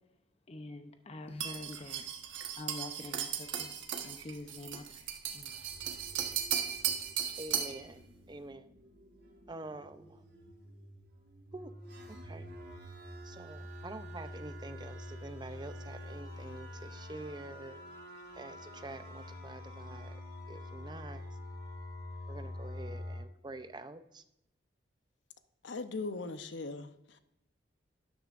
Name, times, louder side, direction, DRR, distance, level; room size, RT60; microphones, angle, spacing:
voice 1, 0.5-2.0 2.6-3.8 4.0-5.6, left 2 dB, 35° left, 0.7 m, -46 dB
sound 1, 1.4-7.8, right 9 dB, 85° right, 1.2 m, -36 dB
sound 2, 4.5-4.9 5.4-23.2, left 1 dB, 65° right, 2.9 m, -47 dB
voice 2, 7.4-8.0 8.3-8.7 9.5-10.2 11.5-11.7 12.1-12.5 13.2-17.8 18.4-20.2 20.5-21.2 22.3-24.2, right 2 dB, 25° right, 0.6 m, -46 dB
voice 3, 25.6-27.2, left 3 dB, 75° left, 0.7 m, -39 dB
12.5 x 10.5 x 2.5 m
head